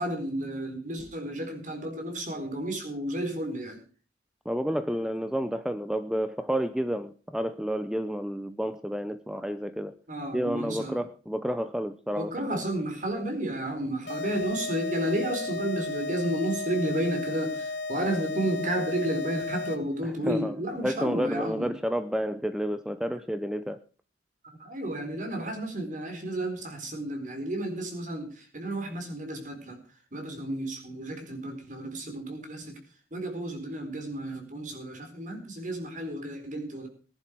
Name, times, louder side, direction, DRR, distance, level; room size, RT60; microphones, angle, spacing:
voice 1, 0.0-3.8 10.1-11.0 12.1-21.7 24.4-29.8 30.1-32.8 33.1-36.9, right 1 dB, 45° right, 6 dB, 4.3 m, -32 dB
voice 2, 4.4-9.9 10.3-12.6 20.0-20.5 20.8-23.8, equal, 5° right, 11 dB, 0.6 m, -30 dB
sound 1, 14.1-20.0, left 3 dB, 80° left, 1.8 m, -34 dB
20.0 x 11.0 x 4.6 m, 0.38 s
head